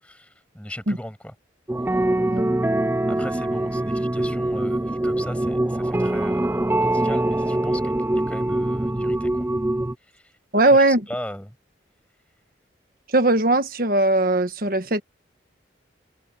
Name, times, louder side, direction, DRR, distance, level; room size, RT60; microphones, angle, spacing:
voice 1, 0.0-1.3 3.1-7.9 8.3-9.5 10.0-10.3 10.6-11.6, left 1 dB, 5° left, 7.5 m, -38 dB
sound 1, 1.7-9.9, right 1 dB, 10° right, 0.4 m, -23 dB
voice 2, 10.5-11.0 13.1-15.0, right 2 dB, 50° right, 1.4 m, -19 dB
head